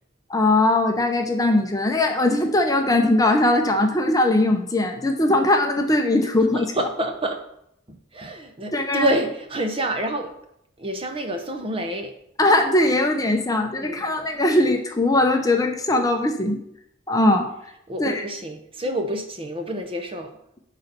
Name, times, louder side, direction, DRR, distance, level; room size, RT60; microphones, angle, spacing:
voice 1, 0.3-6.7 8.7-9.1 12.4-16.6 17.1-17.5 18.0-18.1, left 1 dB, 15° left, 3 dB, 0.7 m, -20 dB
voice 2, 6.5-7.4 7.9-10.3 10.8-12.1 13.8-14.3 17.9-20.3, right 1 dB, 25° right, 5 dB, 0.8 m, -28 dB
10.0 x 4.1 x 6.8 m, 0.76 s
head